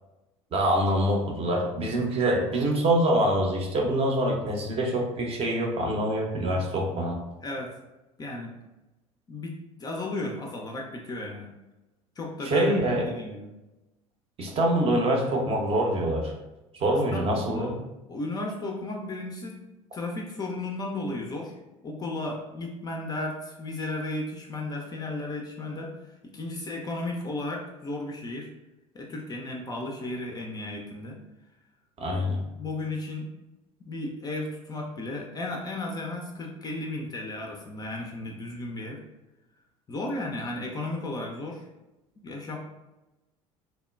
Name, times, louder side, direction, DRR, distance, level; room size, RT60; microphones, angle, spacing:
voice 1, 0.5-7.2 12.4-13.0 14.4-16.3 16.7-17.7 32.0-32.4, right 1 dB, 35° right, 0 dB, 0.6 m, -25 dB
voice 2, 7.4-7.7 8.2-8.5 9.3-11.5 12.2-12.7 13.0-13.5 17.1-17.7 18.1-19.6 19.9-21.5 21.8-25.9 26.3-28.5 28.9-31.2 32.6-33.3 33.8-39.0 39.9-41.6 42.2-42.6, left 2 dB, 20° left, 0 dB, 0.4 m, -34 dB
2.9 x 2.1 x 2.2 m, 1.0 s
figure-of-eight pair, 65°, 18 cm